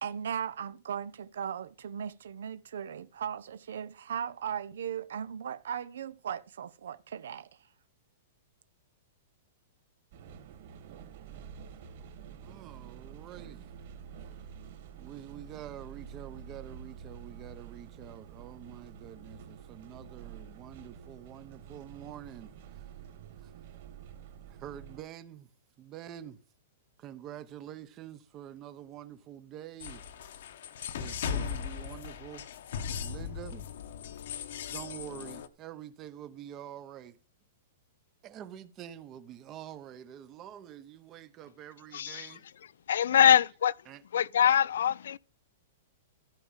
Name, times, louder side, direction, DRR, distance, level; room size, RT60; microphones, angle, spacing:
voice 1, 0.0-7.5, right 8 dB, 75° right, 0.7 m, -37 dB
sound 1, 10.1-25.0, right 7 dB, 40° right, 2.1 m, -48 dB
voice 2, 12.4-13.7 15.0-22.8 23.4-23.5 24.5-25.5 25.8-26.4 27.0-30.0 30.9-32.5 33.0-33.7 34.7-37.2 38.2-42.5 43.1-43.4 43.9-44.0, right 11 dB, 20° right, 0.7 m, -46 dB
sound 2, 29.8-35.5, left 7 dB, 55° left, 1.1 m, -38 dB
voice 3, 41.9-42.3 42.9-43.7 44.1-45.2, left 9 dB, 70° left, 0.5 m, -23 dB
14.5 x 5.0 x 7.3 m
supercardioid pair, 180°, 0 cm